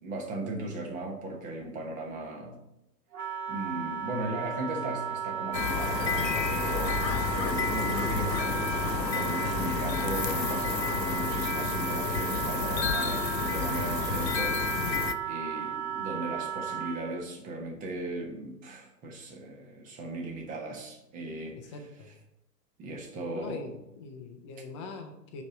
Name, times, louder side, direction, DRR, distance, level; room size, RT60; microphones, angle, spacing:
voice 1, 0.0-2.5 3.5-22.1 22.8-23.7, right 2 dB, 15° right, 1 dB, 1.0 m, -37 dB
Wind instrument woodwind instrument, 3.1-17.2, right 8 dB, 60° right, 1.1 m, -35 dB
sound 1, 5.5-15.1, left 6 dB, 80° left, 0.7 m, -30 dB
voice 2, 21.5-22.1 23.3-25.4, left 3 dB, 20° left, 5 dB, 0.6 m, -42 dB
5.2 x 5.2 x 6.1 m, 0.86 s
figure-of-eight pair, 115°, 50 cm